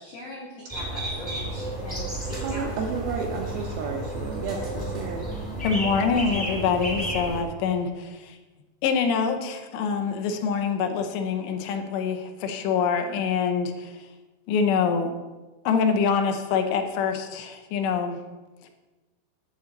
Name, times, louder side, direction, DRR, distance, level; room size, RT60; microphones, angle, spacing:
voice 1, 0.0-2.7, left 1 dB, 65° left, -5 dB, 1.5 m, -41 dB
sound 1, 0.7-7.4, right 1 dB, 15° left, 0.3 m, -32 dB
voice 2, 2.4-5.3 6.1-6.4, right 5 dB, 80° right, 1 dB, 2.3 m, -32 dB
voice 3, 5.6-8.4 8.8-14.1 14.5-15.1 15.7-18.2 18.6-18.7, left 6 dB, 85° left, 6 dB, 3.0 m, -25 dB
9.8 x 3.8 x 7.1 m, 1.2 s
omnidirectional pair, 5.0 m